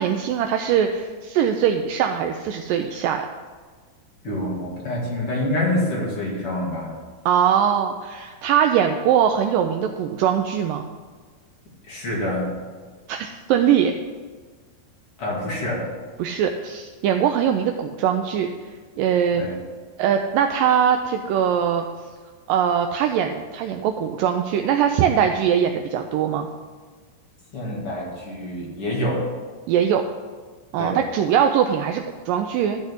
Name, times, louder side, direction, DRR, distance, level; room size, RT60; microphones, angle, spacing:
voice 1, 0.0-3.3 7.3-10.9 13.1-13.9 16.2-18.5 19.0-19.4 20.0-21.9 22.5-26.5 29.7-30.0 30.7-32.8, right 8 dB, 85° right, 5 dB, 2.0 m, -21 dB
voice 2, 4.2-6.9 11.9-12.5 15.2-15.9 19.3-19.5 27.5-29.3 30.8-31.0, left 1 dB, 40° left, -4 dB, 2.8 m, -26 dB
12.5 x 4.3 x 8.0 m, 1.5 s
omnidirectional pair, 4.4 m